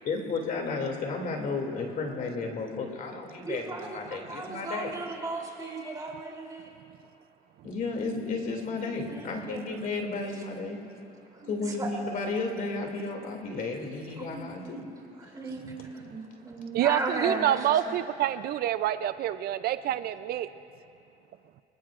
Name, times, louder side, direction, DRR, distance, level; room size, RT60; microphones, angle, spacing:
voice 1, 0.0-4.9 7.6-10.8 11.5-14.8, left 3 dB, 55° left, 2 dB, 2.6 m, -33 dB
voice 2, 3.4-6.7 8.9-9.7 11.3-11.9 14.2-17.9, right 3 dB, 20° right, -2 dB, 3.3 m, -36 dB
voice 3, 16.7-20.5, right 12 dB, 65° right, 12 dB, 0.5 m, -27 dB
26.5 x 20.0 x 2.5 m, 2.6 s
cardioid pair, 110°, 17 cm